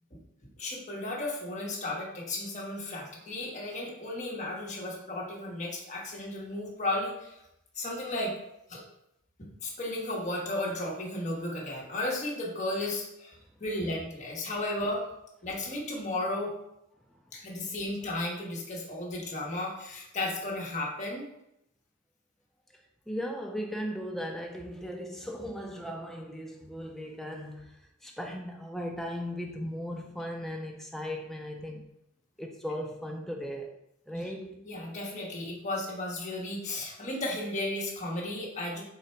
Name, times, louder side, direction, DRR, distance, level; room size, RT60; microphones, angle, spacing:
voice 1, 0.6-7.4 7.8-8.3 8.7-8.8 9.6-15.0 15.4-16.5 17.3-21.3 34.1-34.3 34.6-38.8, left 1 dB, 35° left, -2 dB, 0.8 m, -34 dB
voice 2, 23.1-31.8 32.4-33.7 34.1-34.6, equal, ahead, 1 dB, 0.3 m, -37 dB
3.8 x 2.1 x 4.2 m, 0.82 s
head